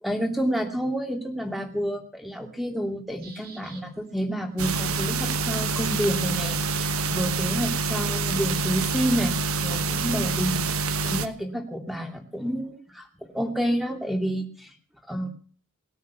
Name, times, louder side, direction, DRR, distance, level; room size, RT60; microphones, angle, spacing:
voice 1, 0.0-9.3 9.6-10.7 11.0-14.7 15.1-15.3, equal, ahead, 4 dB, 2.6 m, -29 dB
sound 1, 3.2-4.1 5.1-6.3 7.2-7.3 8.0-8.9 10.0-10.1, right 5 dB, 45° right, 4.1 m, -46 dB
sound 2, 4.6-11.3, right 4 dB, 70° right, 1.3 m, -27 dB
20.0 x 9.4 x 7.2 m, 0.42 s
head